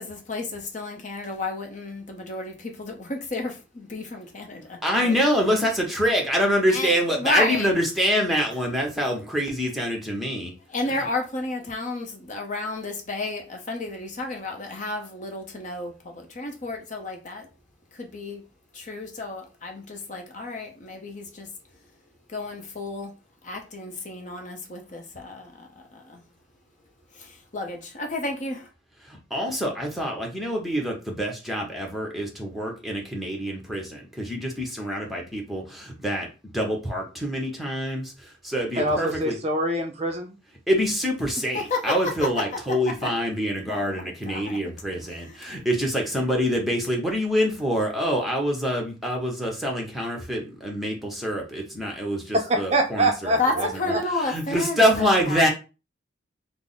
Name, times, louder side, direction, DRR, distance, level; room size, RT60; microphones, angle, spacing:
voice 1, 0.0-5.2 6.7-7.7 10.7-17.5 17.9-18.4 18.7-21.5 22.3-23.1 23.4-26.2 27.1-28.7 41.5-42.0 43.0-43.1 43.7-44.7 45.0-45.6 53.4-55.5, left 2 dB, 40° left, 0.7 m, -32 dB
voice 2, 4.8-10.5 29.1-36.3 36.5-39.4 40.7-53.7 54.2-55.5, equal, ahead, 0.8 m, -26 dB
voice 3, 38.8-40.4 52.3-54.0, right 1 dB, 30° right, 0.4 m, -25 dB
3.5 x 2.0 x 3.8 m
head